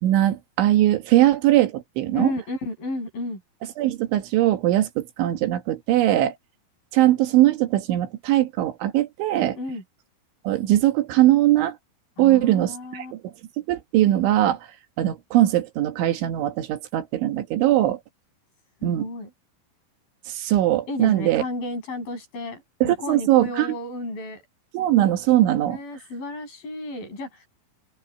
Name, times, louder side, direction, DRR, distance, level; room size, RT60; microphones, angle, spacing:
voice 1, 0.0-2.3 3.8-6.3 6.9-9.6 10.5-11.8 12.2-13.3 13.7-14.6 15.0-18.0 18.8-19.1 20.3-21.4 22.8-23.8 24.7-25.8, right 14 dB, 70° right, 3.9 m, -20 dB
voice 2, 2.1-3.4 9.6-9.8 12.2-13.1 18.8-19.3 20.9-24.4 25.7-27.5, left 2 dB, 45° left, 8.4 m, -32 dB
open air
omnidirectional pair, 5.9 m